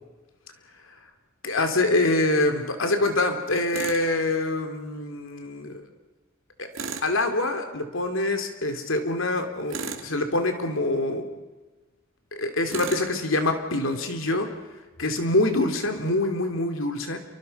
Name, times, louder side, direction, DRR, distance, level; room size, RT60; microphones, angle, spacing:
voice 1, 1.4-5.9 6.6-6.7 7.0-11.3 12.3-14.5 15.0-17.2, left 2 dB, 70° left, 6 dB, 2.9 m, -25 dB
Tools, 3.7-4.1 6.7-7.2 9.7-10.1 12.7-13.1, right 5 dB, 70° right, 2.6 m, -34 dB
28.0 x 24.0 x 5.5 m, 1.2 s
head